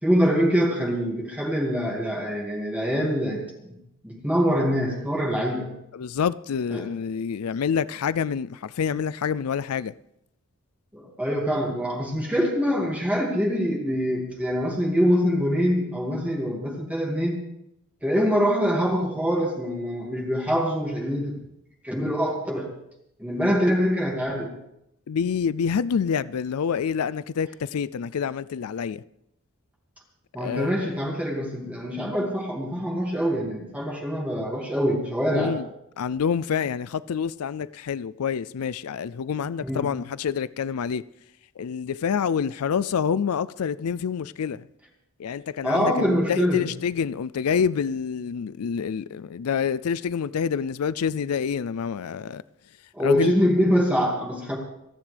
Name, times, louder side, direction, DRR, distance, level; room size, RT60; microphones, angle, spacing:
voice 1, 0.0-3.4 3.7-3.8 4.0-5.7 6.7-6.9 10.9-17.4 18.0-21.4 21.8-22.7 23.2-24.5 30.3-35.5 39.6-39.9 45.6-46.7 52.9-54.6, equal, 5° right, 2.3 m, -24 dB
voice 2, 5.9-9.9 25.1-29.0 30.4-30.9 35.3-35.7 36.0-41.0 41.6-44.7 45.2-52.4 53.0-53.3, left 7 dB, 85° left, 0.4 m, -27 dB
27.5 x 10.5 x 3.4 m
head